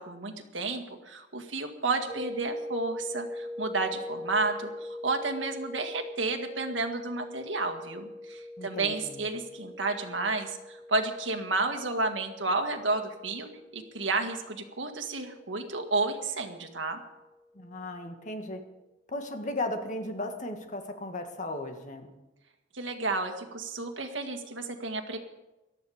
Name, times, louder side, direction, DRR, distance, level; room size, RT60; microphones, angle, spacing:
voice 1, 0.0-17.0 22.7-25.2, right 3 dB, 75° right, 5 dB, 1.9 m, -31 dB
sound 1, 2.1-17.0, left 1 dB, 20° left, 3.7 m, -42 dB
voice 2, 8.6-9.3 17.5-18.6 19.1-22.1, left 2 dB, 40° left, 5 dB, 1.8 m, -36 dB
18.0 x 12.5 x 5.1 m, 1.0 s
head